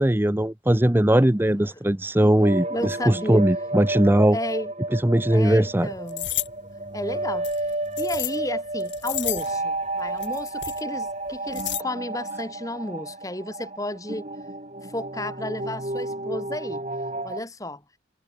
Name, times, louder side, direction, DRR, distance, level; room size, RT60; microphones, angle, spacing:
voice 1, 0.0-4.4 4.9-5.9, right 1 dB, 10° right, 0.6 m, -20 dB
voice 2, 2.2-3.4 4.3-4.7 5.3-6.3 6.9-7.7 8.0-14.3 14.9-16.8 17.2-17.8, left 1 dB, 15° left, 4.3 m, -33 dB
sound 1, 2.4-17.4, right 2 dB, 35° right, 4.9 m, -31 dB
sound 2, 6.1-6.5 7.4-8.4 8.8-9.6 10.2-10.8 11.3-11.8, left 14 dB, 70° left, 6.4 m, -31 dB
head